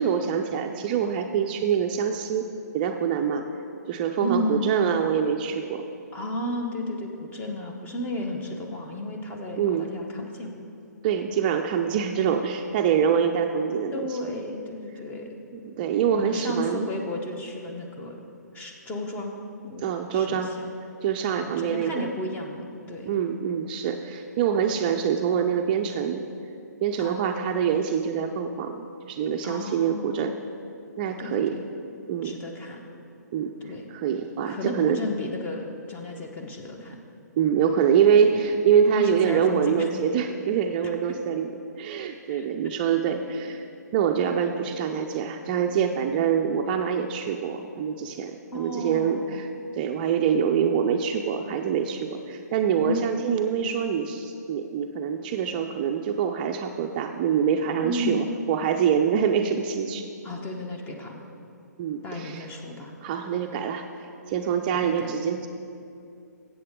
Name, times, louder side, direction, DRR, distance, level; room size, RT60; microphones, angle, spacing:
voice 1, 0.0-2.5 2.7-3.4 3.9-5.8 9.6-9.9 11.0-14.2 15.6-16.8 19.8-20.5 21.0-22.0 23.1-26.2 26.8-30.3 31.0-31.6 32.1-32.4 33.3-35.1 37.4-41.5 41.8-43.7 43.9-49.5 49.7-60.1 61.8-62.5 63.0-63.8 64.3-65.5, right 7 dB, 30° right, 5 dB, 0.4 m, -25 dB
voice 2, 4.2-4.8 6.1-10.6 13.9-15.3 16.1-18.2 18.5-19.4 19.6-19.9 20.1-20.8 21.4-23.1 27.0-27.6 29.4-30.3 31.2-31.6 32.2-32.8 33.6-33.9 34.5-37.0 38.3-38.4 38.9-39.9 42.3-42.5 48.5-49.4 52.8-53.0 57.8-58.2 60.2-61.2 62.0-62.9 64.7-65.1, left 1 dB, 15° left, 2 dB, 0.9 m, -33 dB
13.0 x 8.1 x 3.7 m, 2.6 s
figure-of-eight pair, 135°, 10 cm